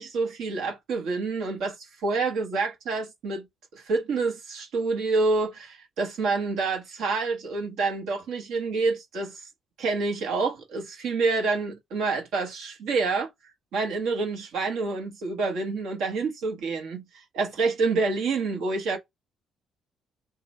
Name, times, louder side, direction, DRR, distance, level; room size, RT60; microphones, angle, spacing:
voice 1, 0.0-3.4 3.7-9.5 9.8-13.3 13.7-19.0, right 3 dB, 75° right, 1.2 m, -27 dB
2.9 x 2.3 x 4.1 m
supercardioid pair, 70°, 0 cm